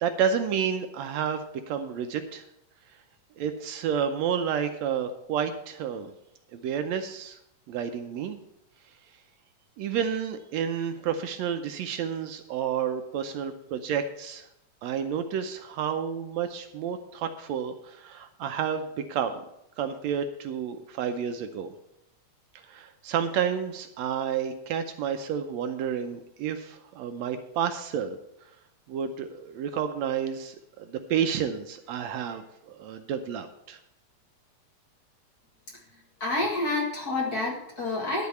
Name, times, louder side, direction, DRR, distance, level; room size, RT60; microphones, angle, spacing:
voice 1, 0.0-1.4 1.7-2.4 3.4-6.1 6.5-7.4 7.7-8.4 9.8-14.5 14.8-19.4 19.8-21.8 22.6-28.2 28.9-33.8, right 8 dB, 75° right, 7 dB, 1.8 m, -30 dB
voice 2, 35.9-38.3, left 2 dB, 35° left, -2 dB, 2.0 m, -29 dB
11.5 x 4.6 x 8.1 m, 0.80 s
omnidirectional pair, 3.3 m